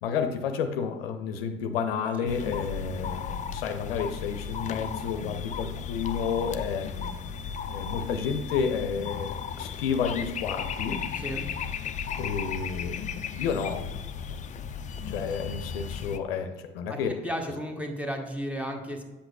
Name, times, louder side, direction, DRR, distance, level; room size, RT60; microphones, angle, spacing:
voice 1, 0.0-6.9 7.7-11.0 12.2-13.0 13.3-13.9 15.1-17.2, left 6 dB, 65° left, 7 dB, 0.6 m, -30 dB
sound 1, 2.3-16.2, left 7 dB, 25° left, 0.4 m, -35 dB
voice 2, 11.1-11.4 16.9-19.0, equal, 5° right, 3 dB, 1.1 m, -34 dB
8.4 x 7.8 x 2.3 m, 1.2 s
figure-of-eight pair, 55°, 31 cm